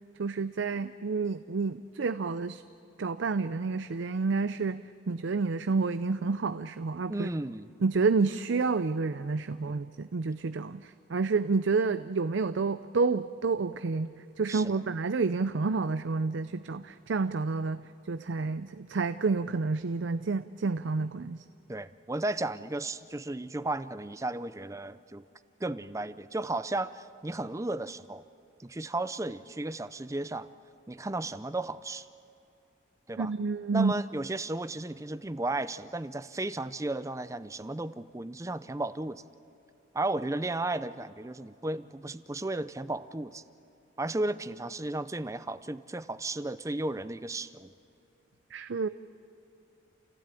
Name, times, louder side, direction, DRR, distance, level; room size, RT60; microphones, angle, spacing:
voice 1, 0.2-2.6 3.0-7.3 7.8-14.1 14.4-21.4 33.2-33.9 48.5-48.9, right 4 dB, 65° right, 12 dB, 0.5 m, -29 dB
voice 2, 7.1-7.7 9.6-9.8 14.5-14.8 21.7-25.2 25.6-28.2 28.6-30.5 30.9-32.1 33.1-33.3 33.7-39.2 39.9-43.4 44.0-47.7, right 2 dB, 15° right, 14 dB, 0.5 m, -34 dB
29.5 x 16.0 x 9.0 m, 2.6 s
head